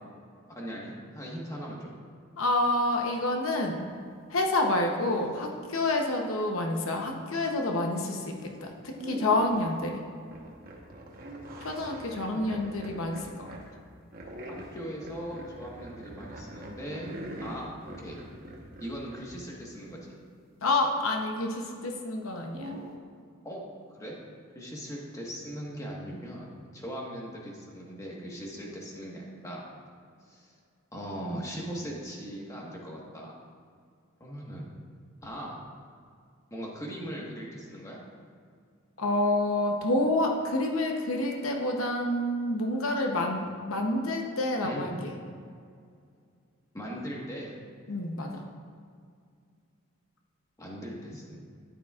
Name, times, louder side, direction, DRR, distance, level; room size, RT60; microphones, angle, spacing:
voice 1, 0.5-1.9 14.5-17.1 17.4-18.2 18.8-20.2 23.4-23.6 23.9-24.2 24.5-29.7 30.3-30.6 30.9-33.3 34.2-34.7 35.2-35.6 36.5-38.0 44.6-45.0 46.7-47.5 50.6-51.4, equal, 15° left, -3 dB, 1.4 m, -39 dB
voice 2, 2.4-3.8 4.3-10.0 11.6-13.5 20.6-22.8 39.0-45.1 47.9-48.4, left 2 dB, 80° left, 2 dB, 0.9 m, -28 dB
sound 1, 8.4-8.6 8.9-9.8 10.3-13.7 14.1-19.3 22.4-23.0, right 1 dB, 45° right, 1.1 m, -42 dB
12.5 x 10.0 x 2.5 m, 2.2 s
head